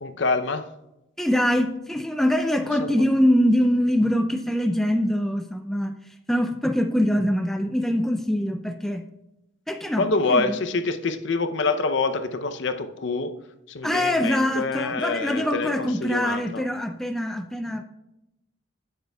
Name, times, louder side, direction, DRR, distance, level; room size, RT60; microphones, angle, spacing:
voice 1, 0.0-0.6 2.8-2.9 10.0-13.3 13.7-16.6, left 3 dB, 60° left, 8 dB, 0.6 m, -26 dB
voice 2, 1.2-5.9 6.3-9.0 9.7-10.6 13.8-17.8, equal, ahead, 6 dB, 0.3 m, -23 dB
16.5 x 6.6 x 2.3 m, 0.91 s
head